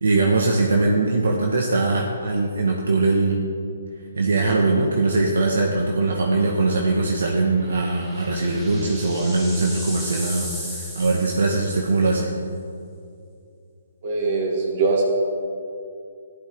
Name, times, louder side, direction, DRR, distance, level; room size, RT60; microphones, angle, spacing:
voice 1, 0.0-3.4 4.2-12.3, right 3 dB, 80° right, 0 dB, 1.3 m, -21 dB
sound 1, 7.5-12.1, equal, 10° right, 3.2 m, -37 dB
voice 2, 14.0-15.0, right 4 dB, 50° right, -2 dB, 3.1 m, -22 dB
14.0 x 11.5 x 3.6 m, 2.4 s
hypercardioid pair, 150°, 0 cm